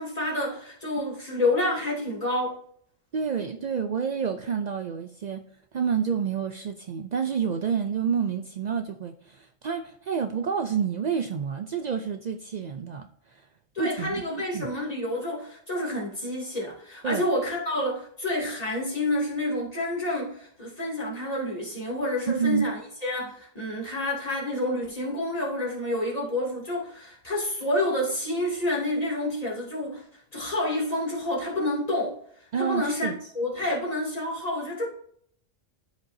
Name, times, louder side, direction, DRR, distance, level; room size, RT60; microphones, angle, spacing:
voice 1, 0.0-2.6 13.7-32.2 32.6-34.9, left 1 dB, 30° left, 2.7 m, -29 dB
voice 2, 3.1-5.4 5.7-13.5 13.8-14.7 17.0-17.2 22.3-22.7 32.5-33.2, right 7 dB, 85° right, 0.3 m, -29 dB
12.5 x 5.3 x 2.7 m
omnidirectional pair, 1.3 m